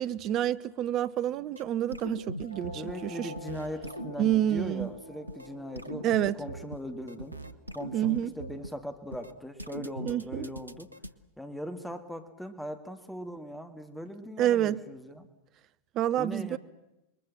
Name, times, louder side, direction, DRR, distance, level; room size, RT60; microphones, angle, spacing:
voice 1, 0.0-3.3 4.2-4.9 6.0-6.4 7.9-8.3 10.0-10.5 14.4-14.8 15.9-16.6, right 11 dB, 35° right, 0.8 m, -28 dB
sound 1, 1.6-1.7 1.9-2.9 3.2-4.9 5.3-5.5 5.8-6.8 7.1-8.7 9.1-9.3 9.6-11.1, right 1 dB, 85° right, 0.9 m, -40 dB
sound 2, 2.4-9.4, left 2 dB, 80° left, 5.7 m, -49 dB
voice 2, 2.7-7.4 7.7-10.9 11.4-15.3 16.2-16.6, equal, ahead, 1.9 m, -40 dB
27.5 x 22.5 x 7.6 m
figure-of-eight pair, 90°, 0 cm